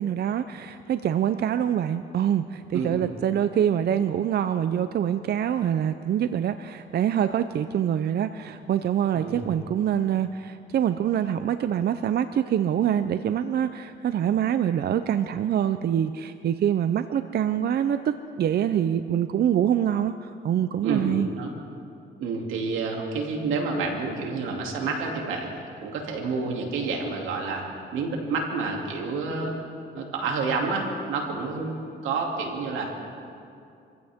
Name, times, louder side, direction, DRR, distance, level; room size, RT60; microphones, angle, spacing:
voice 1, 0.0-21.3, right 9 dB, 55° right, 11 dB, 0.5 m, -25 dB
voice 2, 20.8-21.5 22.2-25.5 25.8-27.6 27.9-29.5 29.9-32.9, right 4 dB, 90° right, 0 dB, 2.7 m, -29 dB
26.0 x 15.5 x 3.6 m, 2.5 s
cardioid pair, 90°, 20 cm